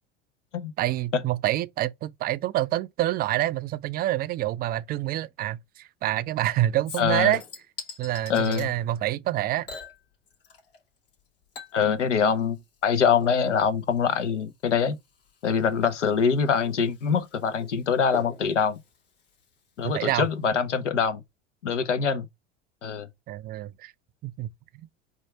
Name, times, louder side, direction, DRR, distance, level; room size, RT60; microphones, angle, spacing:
voice 1, 0.8-7.4 8.0-9.7 19.8-20.3 23.3-23.9 24.2-24.5, right 14 dB, 30° right, 0.3 m, -27 dB
Chink clink / Liquid, 6.9-8.7 9.7-10.8 11.1-20.1 20.4-20.5, left 5 dB, 65° left, 2.6 m, -45 dB
voice 2, 7.0-7.3 8.3-8.7 11.7-12.6 12.8-15.0 15.4-18.8 19.8-21.2 21.6-22.3 22.8-23.1, left 6 dB, 85° left, 0.7 m, -24 dB
4.4 x 2.4 x 4.4 m
hypercardioid pair, 75°, 35 cm